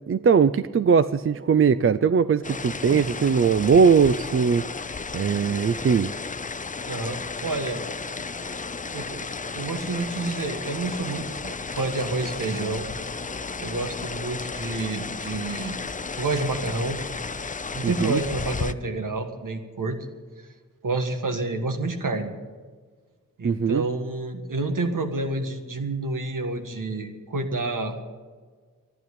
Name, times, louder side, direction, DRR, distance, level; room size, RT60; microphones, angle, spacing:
voice 1, 0.1-4.7 5.1-6.1 17.8-18.2 23.4-23.8, right 6 dB, 40° right, 14 dB, 0.4 m, -20 dB
sound 1, 2.4-18.7, left 4 dB, 25° left, 0.5 m, -33 dB
voice 2, 6.8-7.8 8.9-9.3 9.5-12.9 13.6-15.8 16.2-17.0 17.7-20.0 20.8-22.3 23.4-27.9, right 2 dB, 65° right, 6 dB, 1.7 m, -29 dB
12.0 x 10.5 x 9.8 m, 1.5 s
wide cardioid pair, 70°, 34 cm